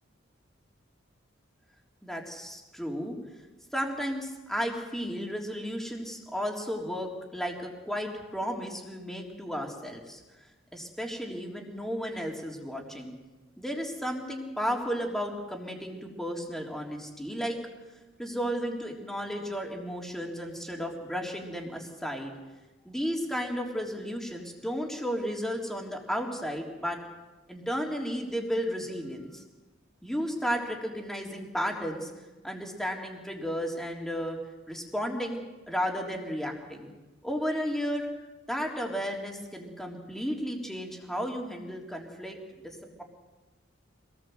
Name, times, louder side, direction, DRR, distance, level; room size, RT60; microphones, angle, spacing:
voice 1, 2.0-3.2 3.7-10.2 10.7-13.1 13.6-17.6 18.2-22.3 22.9-27.0 27.5-29.4 30.0-32.1 32.4-34.4 34.7-36.9 37.2-38.1 38.5-42.4 42.6-43.0, equal, ahead, 0 dB, 3.6 m, -33 dB
25.5 x 19.5 x 7.9 m, 1.2 s
head